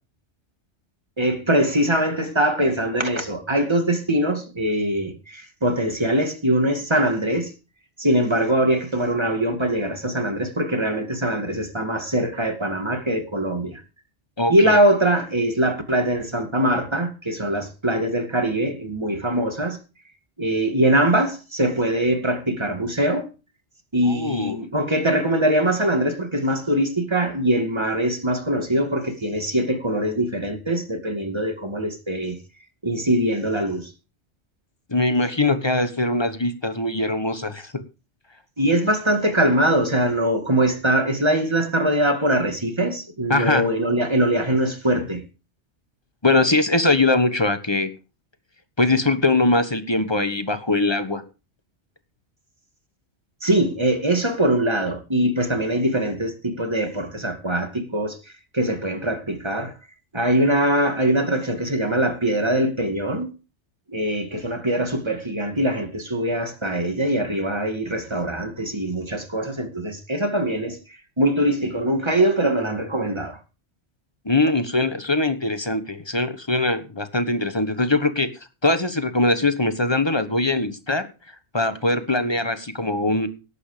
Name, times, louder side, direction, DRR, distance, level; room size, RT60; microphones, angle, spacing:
voice 1, 1.2-7.5 8.0-13.8 14.5-19.8 20.4-23.3 23.9-32.4 32.8-33.9 38.6-45.2 53.4-58.2 58.5-59.7 60.1-63.3 63.9-73.4, right 1 dB, 25° right, 2.3 m, -22 dB
voice 2, 14.4-14.8 24.1-24.6 34.9-37.7 43.3-43.6 46.2-47.9 48.8-51.2 74.2-78.3 78.6-81.1 81.5-83.3, left 2 dB, 25° left, 1.3 m, -21 dB
17.5 x 8.4 x 5.1 m
omnidirectional pair, 1.2 m